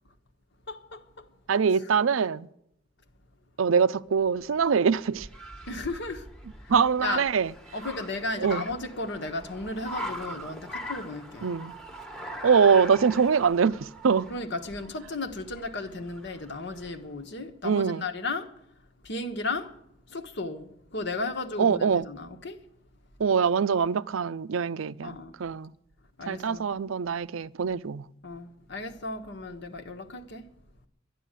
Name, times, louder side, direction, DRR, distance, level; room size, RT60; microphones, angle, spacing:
voice 1, 0.7-1.3 5.7-6.3 6.6-6.7 7.0-7.3 7.7-11.5 14.3-18.5 19.0-19.8 20.1-22.6 25.0-25.4 26.2-26.7 28.2-30.5, left 3 dB, 60° left, 1.3 m, -35 dB
voice 2, 1.5-2.5 3.6-5.3 6.7-7.5 8.4-8.6 11.4-11.7 12.4-14.3 17.6-18.1 21.6-22.0 23.2-25.7 26.3-28.0, right 6 dB, 85° right, 0.5 m, -24 dB
Car, 4.2-17.1, equal, 5° left, 1.1 m, -42 dB
12.0 x 11.0 x 9.0 m
head